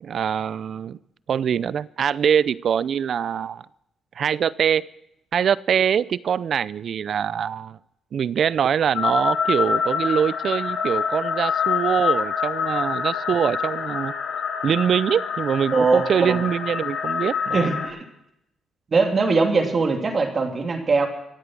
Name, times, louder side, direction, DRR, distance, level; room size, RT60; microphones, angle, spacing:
voice 1, 0.0-1.0 1.3-3.6 4.2-4.9 5.3-7.8 8.1-14.1 14.6-17.7, right 8 dB, 60° right, 20 dB, 0.5 m, -23 dB
sound 1, 8.9-17.9, left 6 dB, 70° left, 4.9 m, -26 dB
voice 2, 15.7-16.4 17.5-18.0 18.9-21.1, right 4 dB, 40° right, 4 dB, 2.8 m, -21 dB
25.5 x 8.5 x 6.2 m, 0.81 s
cardioid pair, 90°, 0 cm